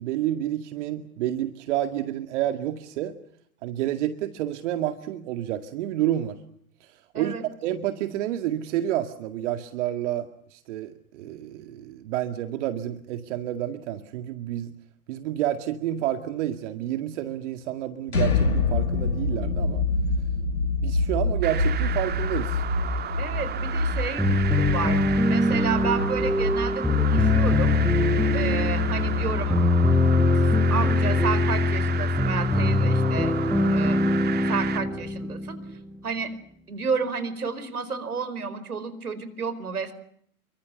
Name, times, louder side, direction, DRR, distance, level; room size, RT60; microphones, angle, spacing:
voice 1, 0.0-3.1 3.6-6.4 6.8-14.7 15.1-19.8 20.8-22.6, right 12 dB, 50° right, 8 dB, 2.1 m, -29 dB
sound 1, 18.1-29.9, left 3 dB, 80° left, 5.3 m, -27 dB
sound 2, 21.4-34.8, right 10 dB, 20° right, 2.1 m, -34 dB
voice 2, 23.2-25.0 25.3-27.8 28.3-29.6 30.7-33.3 33.7-34.0 34.5-35.6 36.0-36.4 36.7-39.9, right 5 dB, 80° right, 13 dB, 4.8 m, -31 dB
sound 3, 24.2-35.9, left 2 dB, ahead, 5.1 m, -22 dB
28.5 x 24.5 x 6.8 m, 0.66 s
hypercardioid pair, 110°, 44 cm